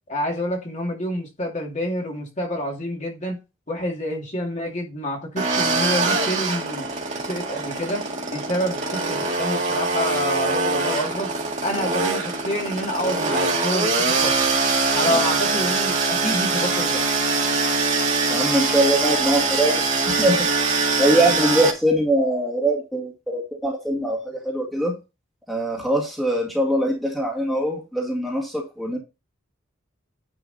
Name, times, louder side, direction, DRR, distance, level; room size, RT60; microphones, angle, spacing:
voice 1, 0.1-3.4 3.7-6.9 7.2-8.0 8.3-11.3 11.6-14.4 14.9-17.1, equal, 35° left, 2.4 m, -28 dB
sound 1, 5.4-21.7, right 3 dB, 35° right, 2.0 m, -23 dB
voice 2, 18.3-20.5 21.0-24.9 25.5-29.0, right 1 dB, ahead, 2.1 m, -22 dB
10.0 x 4.8 x 4.1 m
head